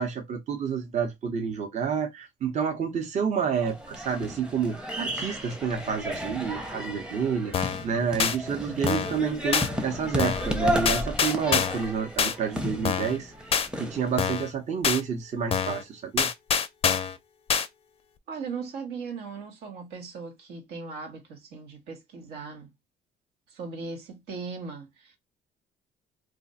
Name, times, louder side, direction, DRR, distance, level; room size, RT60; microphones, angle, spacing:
voice 1, 0.0-7.5 7.8-13.3 13.8-16.3, right 6 dB, 45° right, 0.8 m, -29 dB
sound 1, 3.5-14.2, equal, 5° right, 0.7 m, -33 dB
sound 2, 7.5-7.8 8.2-8.4 8.9-9.2 9.5-9.7 10.2-10.5 10.9-11.8 12.2-12.3 12.8-13.2 13.5-13.7 14.2-14.5 14.8-15.0 15.5-15.8 16.2-17.2 17.5-17.7, left 7 dB, 35° left, 0.4 m, -25 dB
voice 2, 18.3-22.7 23.5-25.2, right 4 dB, 80° right, 1.1 m, -38 dB
2.5 x 2.2 x 4.0 m
cardioid pair, 110°, 17 cm